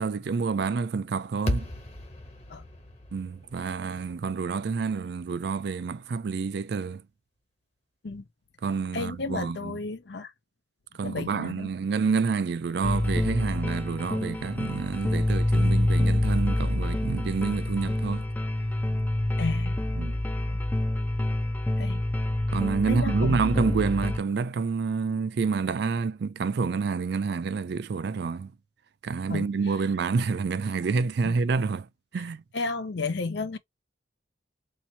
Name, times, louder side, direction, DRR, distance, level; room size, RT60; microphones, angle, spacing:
voice 1, 0.0-1.7 3.1-7.0 8.6-9.7 11.0-18.3 20.0-20.2 22.5-28.5 29.0-31.9 32.1-32.4, right 5 dB, 60° right, 0.4 m, -28 dB
sound 1, 1.5-5.7, left 1 dB, 35° left, 1.3 m, -36 dB
voice 2, 8.9-10.3 11.0-11.7 19.4-19.8 20.4-20.6 21.8-22.0 22.9-23.9 29.3-29.5 31.2-31.4 32.2-32.3 32.5-33.6, left 3 dB, 65° left, 0.6 m, -33 dB
sound 2, 12.8-24.2, left 1 dB, 10° left, 0.3 m, -27 dB
2.8 x 2.6 x 4.1 m
head